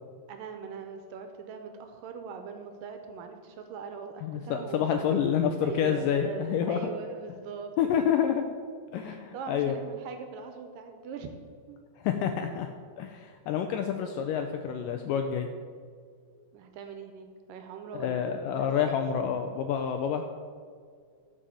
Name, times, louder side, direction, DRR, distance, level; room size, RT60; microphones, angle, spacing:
voice 1, 0.3-5.2 5.6-8.3 9.0-11.8 16.5-18.9, right 6 dB, 75° right, 6 dB, 2.2 m, -42 dB
voice 2, 4.2-6.9 7.8-8.5 8.9-9.8 12.0-12.7 13.0-15.5 17.9-20.2, left 8 dB, 85° left, 6 dB, 1.9 m, -28 dB
12.5 x 5.0 x 6.9 m, 2.1 s
omnidirectional pair, 4.4 m